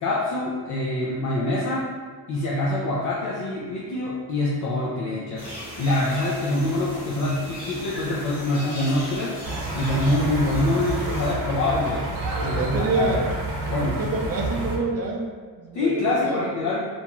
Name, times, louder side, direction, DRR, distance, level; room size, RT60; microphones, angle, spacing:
voice 1, 0.0-1.9 2.3-5.5 5.8-9.4 9.8-12.1 12.4-13.2 13.7-14.0 15.7-16.9, left 2 dB, 50° left, -6 dB, 0.4 m, -25 dB
sound 1, 5.4-11.3, equal, 15° right, 0.8 m, -37 dB
sound 2, 9.4-14.8, right 2 dB, 85° right, 0.7 m, -29 dB
voice 2, 12.3-13.3 13.7-16.4, right 3 dB, 40° right, 0 dB, 0.4 m, -28 dB
2.5 x 2.2 x 2.9 m, 1.5 s
cardioid pair, 150°, 39 cm